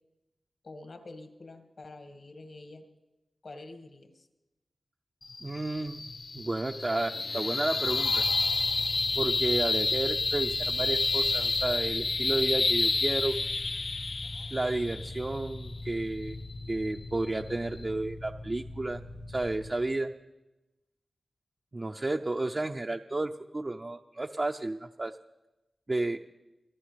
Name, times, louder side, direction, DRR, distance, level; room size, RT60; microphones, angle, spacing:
voice 1, 0.6-2.9 3.4-4.3, left 2 dB, 70° left, 4 dB, 2.0 m, -47 dB
sound 1, 5.2-17.8, left 3 dB, 55° left, 0.5 m, -30 dB
voice 2, 5.4-6.0 6.3-8.2 9.2-13.4 14.5-16.4 16.7-19.0 19.3-20.1 21.7-25.2 25.9-26.2, right 2 dB, 40° right, 3 dB, 0.6 m, -32 dB
sound 2, 7.8-19.7, left 2 dB, 90° left, 2.6 m, -42 dB
26.0 x 14.0 x 3.5 m, 1.0 s
cardioid pair, 45°, 0 cm